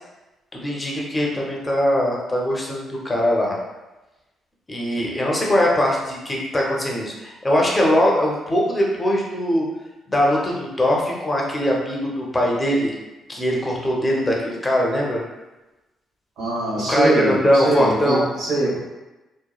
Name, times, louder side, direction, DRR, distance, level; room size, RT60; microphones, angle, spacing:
voice 1, 0.5-3.6 4.7-9.7 10.1-12.9 13.3-15.2 16.8-18.2, equal, 20° left, -2 dB, 0.6 m, -21 dB
voice 2, 16.4-18.8, right 2 dB, 80° right, -6 dB, 1.1 m, -22 dB
2.9 x 2.1 x 2.2 m, 1.1 s
cardioid pair, 90°, 0 cm